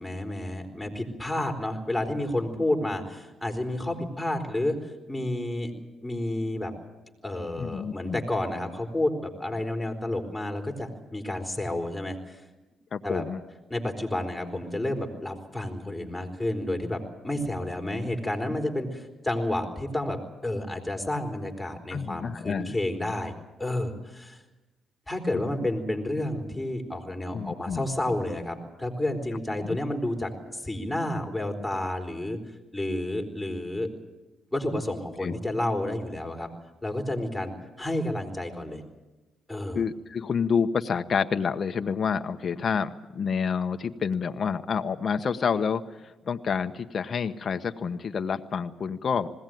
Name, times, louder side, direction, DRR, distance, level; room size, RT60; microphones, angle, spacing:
voice 1, 0.0-5.7 6.0-6.7 7.2-12.4 13.0-13.2 13.7-23.3 23.6-24.4 25.1-32.4 32.7-33.9 34.5-36.5 36.8-37.5 37.8-38.8 39.5-39.8, left 1 dB, 5° left, 2 dB, 4.2 m, -30 dB
voice 2, 7.6-8.2 12.9-13.4 21.9-22.8 27.3-27.9 29.6-29.8 35.2-35.3 39.7-49.3, left 6 dB, 45° left, 8 dB, 1.0 m, -28 dB
20.5 x 17.0 x 9.2 m, 1.1 s
cardioid pair, 90°, 0 cm